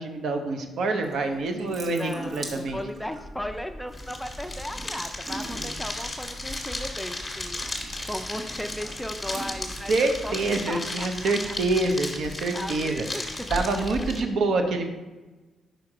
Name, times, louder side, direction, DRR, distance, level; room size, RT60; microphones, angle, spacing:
voice 1, 0.0-2.8 9.9-13.0 13.5-14.9, right 3 dB, 70° right, 5 dB, 0.8 m, -26 dB
Water tap faucet / Sink (filling or washing) / Drip, 1.0-10.8, right 1 dB, 45° right, 1.2 m, -43 dB
voice 2, 1.8-7.7 8.0-10.3 10.7-11.5 12.5-13.2, equal, 5° left, 7 dB, 0.4 m, -36 dB
sound 1, 3.9-14.2, left 2 dB, 20° left, 1.5 m, -35 dB
5.1 x 4.5 x 4.9 m, 1.2 s
cardioid pair, 105°, 0 cm